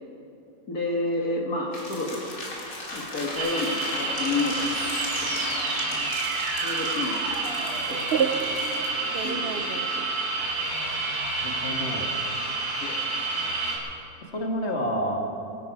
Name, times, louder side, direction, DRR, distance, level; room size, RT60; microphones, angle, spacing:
voice 1, 0.7-2.4 2.9-6.2 6.6-8.6 9.2-10.1 12.8-13.0, left 2 dB, 75° left, -1 dB, 2.1 m, -31 dB
sound 1, 1.7-8.9, left 1 dB, 90° left, 3.3 m, -37 dB
sound 2, 3.4-13.8, right 3 dB, 85° right, 3.2 m, -29 dB
sound 3, 4.7-10.4, right 7 dB, 55° right, 0.7 m, -32 dB
voice 2, 11.2-12.1 14.3-15.2, equal, 45° left, 0 dB, 2.3 m, -30 dB
23.0 x 12.0 x 4.8 m, 2.8 s
omnidirectional pair, 1.6 m